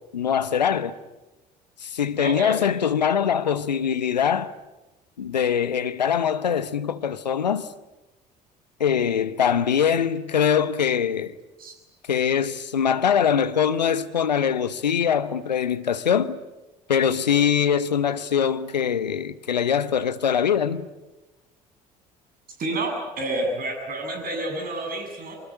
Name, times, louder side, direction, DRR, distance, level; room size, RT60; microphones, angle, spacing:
voice 1, 0.1-0.9 1.8-4.5 5.2-7.7 8.8-11.4 12.1-16.4 16.9-20.9, left 8 dB, 85° left, 1.0 m, -23 dB
voice 2, 2.2-2.5 11.6-11.7 22.6-25.4, right 1 dB, 45° right, 7.6 m, -29 dB
25.0 x 24.5 x 9.9 m
figure-of-eight pair, 55°, 21 cm